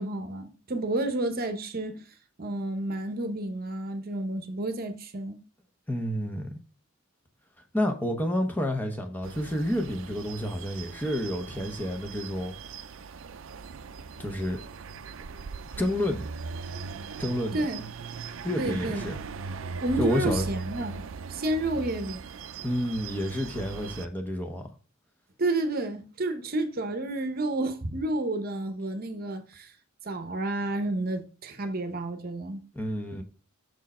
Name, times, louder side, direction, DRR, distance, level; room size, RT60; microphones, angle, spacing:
voice 1, 0.0-2.0 2.4-5.4 17.5-17.8 18.6-19.1 19.8-21.0 21.3-22.2 25.4-29.7 30.0-32.6, right 2 dB, 45° right, 0.8 m, -30 dB
voice 2, 5.9-6.6 7.7-12.5 14.2-14.6 15.8-16.2 17.2-17.6 18.4-19.2 20.0-20.5 22.6-24.7 32.7-33.2, equal, 10° left, 0.7 m, -29 dB
sound 1, 9.2-24.1, right 5 dB, 70° right, 0.5 m, -39 dB
6.3 x 4.6 x 4.1 m
head